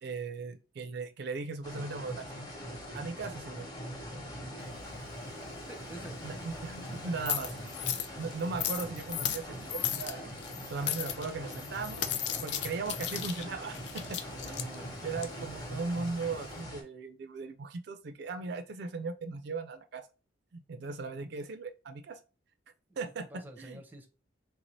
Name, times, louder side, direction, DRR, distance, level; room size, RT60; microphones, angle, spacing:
voice 1, 0.0-2.4 2.9-3.7 6.2-7.5 8.2-10.2 10.7-12.1 12.4-20.0 20.5-22.2 23.0-23.3 23.6-23.8, right 4 dB, 60° right, 0.4 m, -38 dB
sound 1, 1.6-16.8, equal, 20° left, 0.9 m, -42 dB
sound 2, 4.6-16.6, left 10 dB, 60° left, 0.4 m, -38 dB
voice 2, 5.7-6.3 6.9-7.4 14.3-15.5 20.8-21.4 22.9-24.1, right 1 dB, 10° right, 0.5 m, -50 dB
3.5 x 2.6 x 3.0 m
head